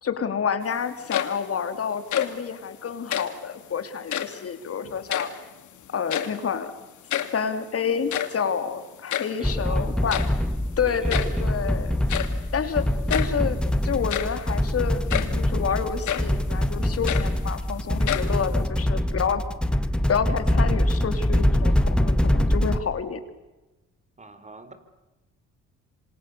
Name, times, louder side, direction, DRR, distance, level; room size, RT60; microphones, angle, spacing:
voice 1, 0.0-5.3 5.9-6.7 7.3-10.2 10.8-12.0 12.5-19.4 20.1-23.2, left 7 dB, 50° left, 9 dB, 3.3 m, -29 dB
sound 1, 0.9-1.6 1.9-2.5 3.0-3.4 4.0-4.5 4.8-5.7 5.9-6.5 6.8-6.9 7.1-7.4 7.9-9.4 10.1-10.5 11.1-11.5 12.1-12.4 13.1-13.4 13.9-14.5 15.1-15.4 16.0-16.4 16.8-17.7 18.0-18.7, left 10 dB, 75° left, 2.4 m, -30 dB
sound 2, 9.4-22.8, left 1 dB, 5° left, 1.7 m, -24 dB
voice 2, 9.4-10.3 10.8-11.5 24.2-24.7, right 3 dB, 25° right, 10 dB, 4.5 m, -41 dB
27.0 x 27.0 x 7.0 m, 1.1 s
cardioid pair, 90°, 30 cm